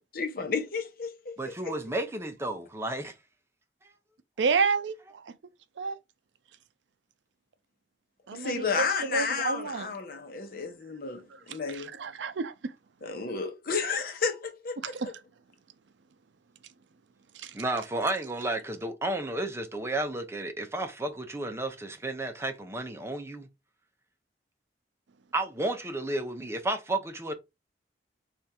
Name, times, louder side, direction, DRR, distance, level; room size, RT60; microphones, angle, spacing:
voice 1, 0.1-1.8 8.3-11.9 13.0-15.1, left 5 dB, 55° left, 0.8 m, -32 dB
voice 2, 1.4-3.2 17.5-23.5 25.3-27.3, right 2 dB, 15° right, 0.6 m, -32 dB
voice 3, 4.4-5.3 5.8-6.0 8.3-9.9 11.3-12.7 14.8-15.1 17.3-17.6, right 4 dB, 85° right, 0.5 m, -30 dB
3.5 x 2.5 x 4.2 m
head